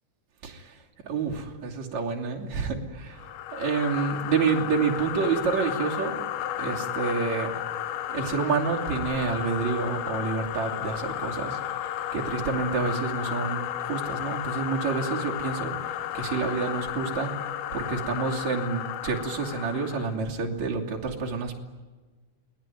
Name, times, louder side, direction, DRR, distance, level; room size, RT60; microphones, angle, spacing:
voice 1, 0.4-0.7 1.1-3.2 3.5-6.2 6.6-7.5 8.1-11.6 12.1-15.7 16.1-17.3 17.7-21.6, right 5 dB, 45° right, -1 dB, 3.7 m, -28 dB
sound 1, 3.2-20.2, left 11 dB, 90° left, 3.3 m, -33 dB
28.5 x 20.5 x 9.3 m, 1.3 s
omnidirectional pair, 5.1 m